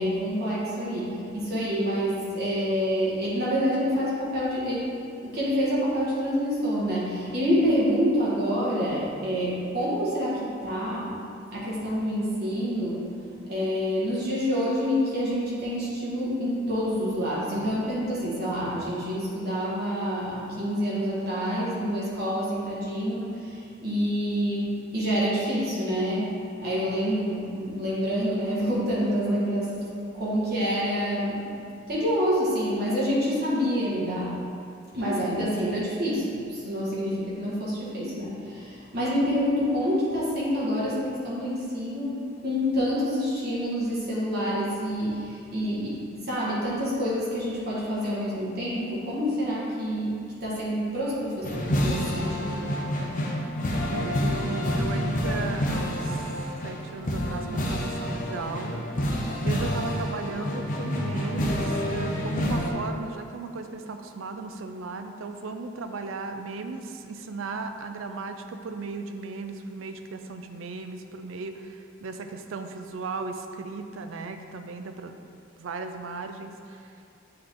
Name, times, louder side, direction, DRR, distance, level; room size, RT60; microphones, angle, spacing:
voice 1, 0.0-5.0 5.2-11.2 11.5-13.1 13.5-31.5 31.9-34.4 34.9-52.7, equal, 55° right, -8 dB, 1.4 m, -27 dB
sound 1, 51.4-62.7, equal, 45° left, 0.8 m, -28 dB
voice 2, 53.9-56.3 56.6-58.9 59.4-75.2 75.6-77.0, right 3 dB, 90° right, 7 dB, 0.4 m, -36 dB
7.8 x 3.8 x 3.5 m, 2.5 s
head